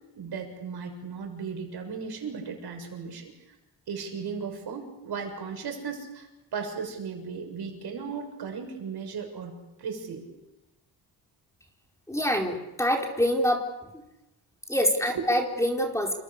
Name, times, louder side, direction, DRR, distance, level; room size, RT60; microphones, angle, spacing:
voice 1, 0.2-3.3 3.9-6.3 6.5-9.5 9.8-10.3 15.1-15.3, right 6 dB, 75° right, 4 dB, 7.1 m, -36 dB
voice 2, 12.1-13.6 14.7-16.1, equal, 5° left, 2 dB, 4.5 m, -25 dB
29.5 x 26.5 x 6.8 m, 0.95 s
wide cardioid pair, 130°, 39 cm